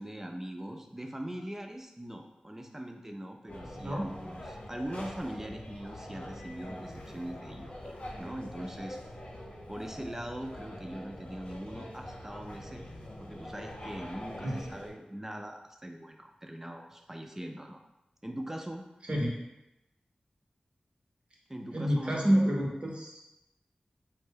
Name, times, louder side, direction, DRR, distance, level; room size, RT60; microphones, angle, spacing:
voice 1, 0.0-9.0 9.7-12.9 13.2-17.8 18.2-18.8 21.5-22.4, right 1 dB, 15° right, 4 dB, 0.3 m, -41 dB
sound 1, 3.5-14.9, left 1 dB, 45° left, 0.5 m, -44 dB
voice 2, 21.7-23.2, equal, 40° right, -2 dB, 0.7 m, -28 dB
2.5 x 2.1 x 3.4 m, 0.91 s
cardioid pair, 50°, 3 cm